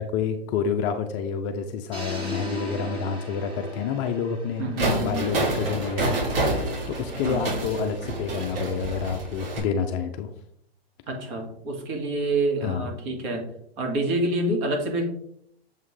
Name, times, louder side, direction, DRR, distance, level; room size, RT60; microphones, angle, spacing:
voice 1, 0.0-6.2 6.5-10.3 12.6-12.9, left 6 dB, 30° left, 6 dB, 0.5 m, -28 dB
sound 1, 1.9-5.9, equal, 15° right, 2.0 m, -38 dB
voice 2, 4.6-5.3 7.2-7.5 11.1-13.5 13.8-15.0, right 2 dB, 45° right, 2 dB, 2.1 m, -27 dB
sound 2, 4.8-9.6, right 2 dB, 60° right, 2.9 m, -28 dB
7.2 x 5.5 x 3.2 m, 0.70 s
hypercardioid pair, 135°, 31 cm